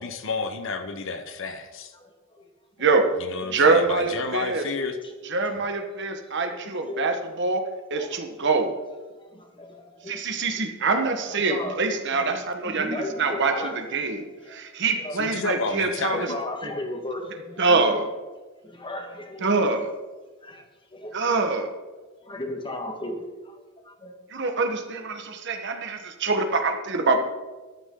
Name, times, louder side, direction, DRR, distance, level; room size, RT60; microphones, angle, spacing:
voice 1, 0.0-1.9 3.2-5.0 15.1-16.4, left 3 dB, 65° left, 8 dB, 1.0 m, -31 dB
voice 2, 1.9-2.5 6.5-7.2 7.9-8.5 9.2-10.6 10.9-12.3 12.6-14.6 14.9-15.2 15.5-15.6 16.0-18.0 18.6-19.8 20.4-21.2 22.0-24.1, left 1 dB, 25° left, 4 dB, 1.7 m, -36 dB
voice 3, 3.4-4.6 5.3-7.6 7.9-8.7 10.1-13.5 13.9-16.3 17.6-18.0 19.4-19.9 21.1-21.7 24.3-27.2, right 3 dB, 55° right, 5 dB, 1.4 m, -24 dB
13.5 x 11.5 x 3.9 m, 1.3 s
head